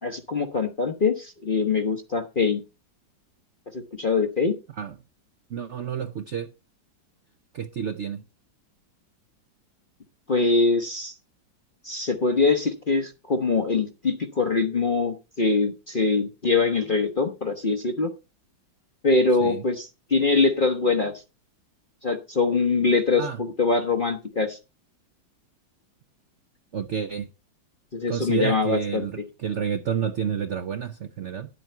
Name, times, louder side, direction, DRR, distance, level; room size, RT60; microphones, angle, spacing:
voice 1, 0.0-2.6 3.7-4.5 10.3-11.1 11.8-18.1 19.0-21.2 22.0-24.6 27.9-29.0, left 4 dB, 40° left, 0.7 m, -23 dB
voice 2, 5.5-6.5 7.5-8.2 19.4-19.7 23.2-23.4 26.7-27.3 28.1-31.5, right 8 dB, 65° right, 0.7 m, -29 dB
10.5 x 8.4 x 4.4 m
omnidirectional pair, 2.1 m